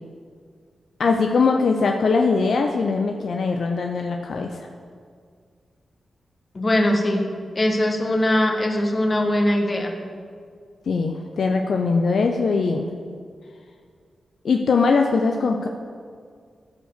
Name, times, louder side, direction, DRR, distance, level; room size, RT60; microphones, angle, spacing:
voice 1, 1.0-4.7 10.9-12.9 14.4-15.7, left 4 dB, 70° left, 3 dB, 0.6 m, -21 dB
voice 2, 6.5-7.3 7.5-9.9, left 1 dB, 40° left, 3 dB, 1.7 m, -21 dB
14.0 x 5.2 x 6.7 m, 2.1 s
cardioid pair, 45°, 0 cm